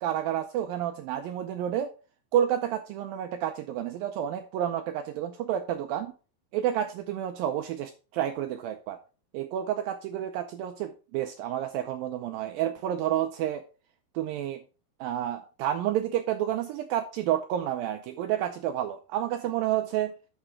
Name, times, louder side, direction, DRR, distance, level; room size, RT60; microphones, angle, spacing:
voice 1, 0.0-1.9 2.3-6.1 6.5-9.0 9.3-13.6 14.1-14.6 15.0-20.1, right 11 dB, 85° right, 7 dB, 2.1 m, -30 dB
8.8 x 6.6 x 3.7 m, 0.34 s
omnidirectional pair, 4.8 m